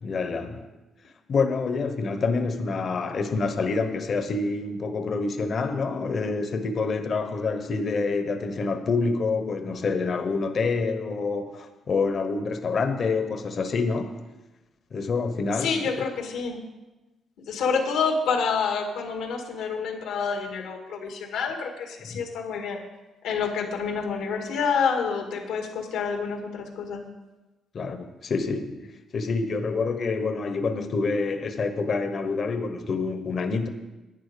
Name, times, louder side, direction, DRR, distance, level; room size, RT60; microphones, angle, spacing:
voice 1, 0.0-0.6 1.3-14.2 14.9-16.0 22.1-22.2 27.7-33.7, left 4 dB, 50° left, 1.0 m, -27 dB
voice 2, 15.6-16.6 17.5-22.8 23.2-27.1, left 5 dB, 85° left, 1.8 m, -28 dB
11.0 x 9.3 x 5.1 m
cardioid pair, 90°, 0 cm